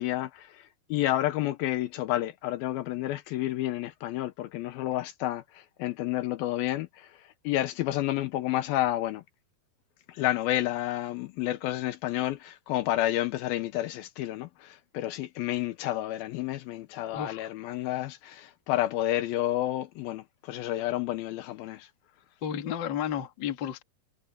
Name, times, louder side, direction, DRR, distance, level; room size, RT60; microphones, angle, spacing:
voice 1, 0.0-9.2 10.1-21.9, left 14 dB, 75° left, 2.5 m, -30 dB
voice 2, 22.4-23.8, left 9 dB, 45° left, 1.6 m, -32 dB
omnidirectional pair, 4.5 m